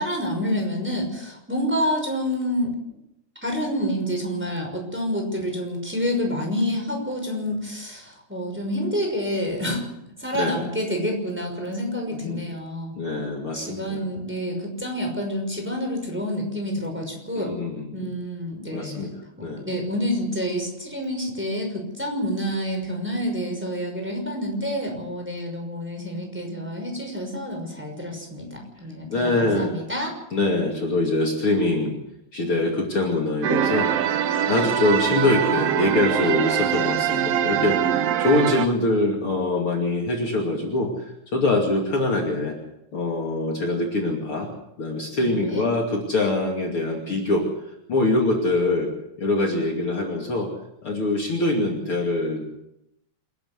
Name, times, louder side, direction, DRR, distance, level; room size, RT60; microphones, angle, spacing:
voice 1, 0.0-2.7 3.4-9.8 10.2-13.0 13.5-17.5 17.9-19.1 19.4-30.1 45.2-45.6, equal, 5° right, 1 dB, 5.8 m, -28 dB
voice 2, 12.1-12.5 13.0-14.0 17.3-18.1 18.7-19.6 29.1-29.7 30.3-32.0 32.3-33.9 34.5-37.8 38.2-40.9 41.3-42.6 42.9-44.5 44.8-47.5 47.9-48.9 49.2-50.5 50.8-52.4, left 2 dB, 45° left, 0 dB, 3.3 m, -24 dB
sound 1, 33.4-38.7, right 10 dB, 65° right, 1.9 m, -23 dB
27.5 x 12.0 x 8.1 m, 0.83 s
omnidirectional pair, 3.4 m